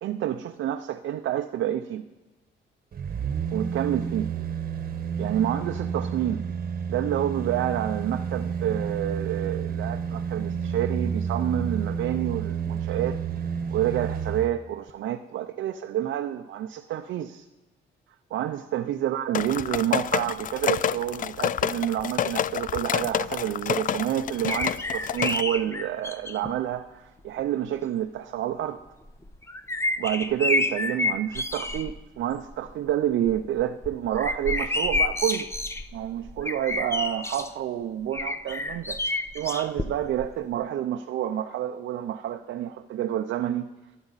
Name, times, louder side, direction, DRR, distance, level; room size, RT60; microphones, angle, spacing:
voice 1, 0.0-2.1 3.5-4.3 5.2-6.4 6.9-13.2 13.7-17.5 18.3-28.8 30.0-35.5 35.9-43.7, right 11 dB, 70° right, 0.6 m, -29 dB
sound 1, 2.9-14.5 14.9-15.0, right 7 dB, 45° right, 1.2 m, -30 dB
sound 2, 19.3-25.4, left 9 dB, 45° left, 0.4 m, -28 dB
sound 3, 24.5-26.5 27.4-27.5 29.1-32.0 32.3-32.7 33.1-37.5 38.1-40.3 40.5-40.6, left 2 dB, 15° left, 0.7 m, -29 dB
25.0 x 11.0 x 4.1 m
cardioid pair, 90°, 20 cm